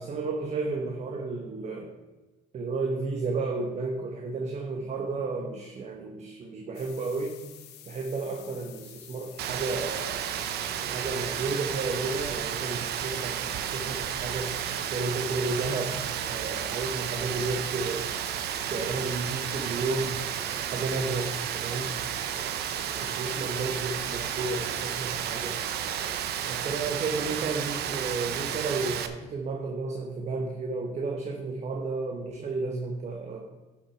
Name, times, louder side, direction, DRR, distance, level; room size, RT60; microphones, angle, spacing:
voice 1, 0.0-2.0 2.5-7.4 7.9-10.3 10.9-14.6 14.9-16.0 16.3-18.1 18.6-20.2 20.7-21.9 23.0-25.6 26.5-33.4, right 3 dB, 40° right, 2 dB, 1.1 m, -32 dB
sound 1, 6.7-26.6, left 10 dB, 80° left, 1.0 m, -50 dB
Rain, 9.4-29.1, right 9 dB, 75° right, 0.7 m, -32 dB
11.0 x 6.0 x 4.5 m, 1.2 s
cardioid pair, 110°, 17 cm